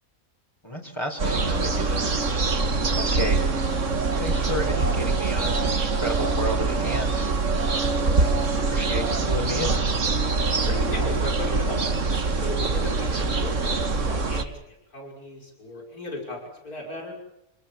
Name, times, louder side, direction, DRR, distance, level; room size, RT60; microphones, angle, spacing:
voice 1, 0.6-2.1 2.4-3.4 4.2-8.4 8.7-9.8, equal, 20° left, 0 dB, 4.7 m, -32 dB
sound 1, 1.2-14.4, right 3 dB, 55° right, 2.2 m, -24 dB
voice 2, 10.7-12.0 12.4-17.1, left 1 dB, 85° left, 1 dB, 6.4 m, -36 dB
29.0 x 18.5 x 7.3 m, 0.86 s
omnidirectional pair, 1.5 m